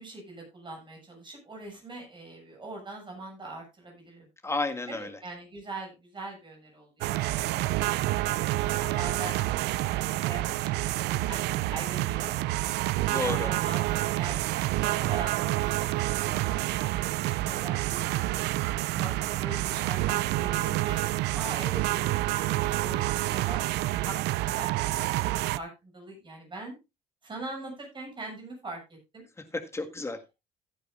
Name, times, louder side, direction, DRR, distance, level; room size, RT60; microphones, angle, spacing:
voice 1, 0.0-4.3 4.9-7.3 8.6-9.4 10.2-12.3 13.0-14.4 14.8-18.4 18.9-21.0 21.3-24.7 24.9-26.8 27.2-29.2, right 2 dB, 30° right, 1 dB, 7.2 m, -42 dB
voice 2, 4.4-5.2 13.1-13.5 29.4-30.2, left 3 dB, 15° left, 6 dB, 1.9 m, -32 dB
sound 1, 7.0-25.6, right 17 dB, 80° right, 0.5 m, -28 dB
15.5 x 9.8 x 2.6 m, 0.25 s
cardioid pair, 110°, 17 cm